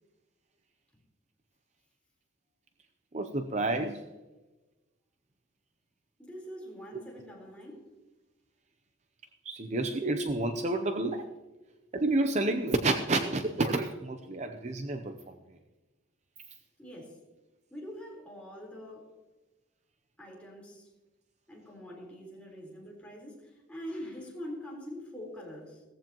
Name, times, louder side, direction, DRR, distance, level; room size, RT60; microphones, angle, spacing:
voice 1, 3.1-4.0 9.4-11.3 11.9-15.3, right 2 dB, 35° right, 6 dB, 0.6 m, -29 dB
voice 2, 6.2-7.9 16.8-17.2 17.7-19.1 20.2-20.9 21.5-25.8, equal, 5° left, -3 dB, 4.1 m, -44 dB
17.0 x 14.5 x 3.0 m, 1.1 s
head